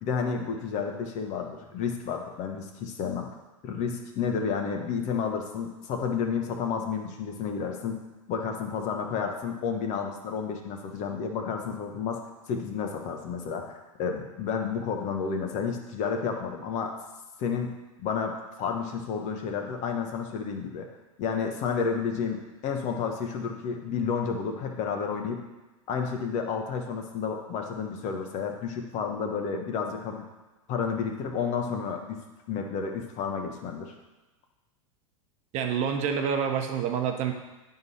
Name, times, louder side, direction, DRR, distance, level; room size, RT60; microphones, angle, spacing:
voice 1, 0.0-3.3 3.6-8.0 8.3-12.2 12.5-16.9 17.4-17.7 18.0-20.9 21.2-25.4 25.9-30.2 30.7-32.2 32.5-33.9, left 6 dB, 45° left, 3 dB, 1.2 m, -31 dB
voice 2, 35.5-37.3, right 7 dB, 45° right, 5 dB, 0.9 m, -27 dB
10.5 x 3.9 x 4.2 m, 1.1 s
hypercardioid pair, 105°, 17 cm